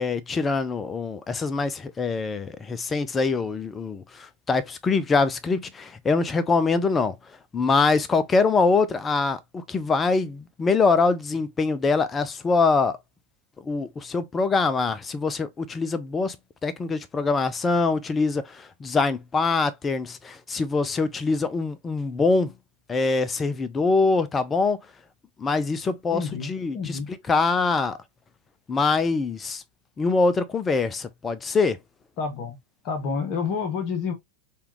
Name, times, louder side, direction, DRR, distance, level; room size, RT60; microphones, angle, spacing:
voice 1, 0.0-7.1 7.5-13.0 13.6-16.4 16.6-22.5 22.9-24.8 25.4-27.0 27.3-28.0 28.7-29.6 30.0-31.8, left 4 dB, 20° left, 0.4 m, -24 dB
voice 2, 26.1-27.1 32.2-32.6 32.8-34.1, left 5 dB, 40° left, 0.9 m, -29 dB
3.3 x 2.4 x 2.9 m
figure-of-eight pair, 90°, 0 cm